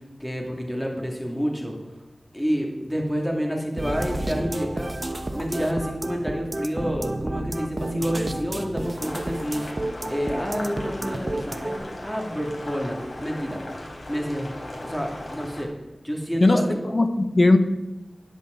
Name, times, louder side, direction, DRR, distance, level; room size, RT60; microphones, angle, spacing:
voice 1, 0.2-1.7 2.3-4.9 5.3-9.6 10.1-13.6 14.1-14.5 14.8-15.7 16.0-16.8, equal, 5° left, 0 dB, 2.4 m, -28 dB
sound 1, 3.8-11.8, right 1 dB, 35° right, 1.0 m, -31 dB
Boiling, 8.8-15.6, left 1 dB, 75° left, 3.9 m, -38 dB
voice 2, 16.4-17.6, left 2 dB, 45° left, 7 dB, 1.2 m, -18 dB
13.0 x 10.5 x 3.9 m, 1.0 s
wide cardioid pair, 65°, 0 cm